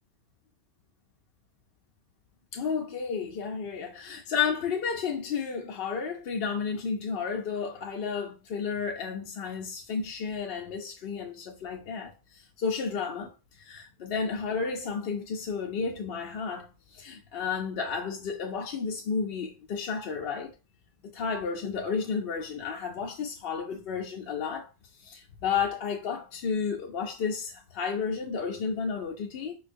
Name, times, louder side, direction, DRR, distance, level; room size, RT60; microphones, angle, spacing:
voice 1, 2.5-20.5 21.0-24.7 25.0-29.6, left 5 dB, 65° left, 0.7 m, -32 dB
4.4 x 2.3 x 2.5 m
omnidirectional pair, 1.1 m